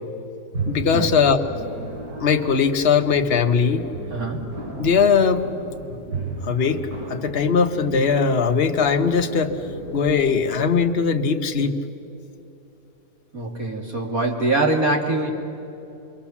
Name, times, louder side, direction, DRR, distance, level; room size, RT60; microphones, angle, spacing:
sound 1, 0.5-10.7, right 2 dB, 80° right, 7.6 m, -34 dB
voice 1, 0.7-1.4 2.2-3.9 4.8-5.5 6.4-9.6 9.9-11.8, left 6 dB, 40° left, 4 dB, 1.3 m, -20 dB
voice 2, 4.1-4.4 13.3-15.3, right 2 dB, 55° right, 0 dB, 3.3 m, -23 dB
28.5 x 22.5 x 7.3 m, 2.9 s
omnidirectional pair, 1.8 m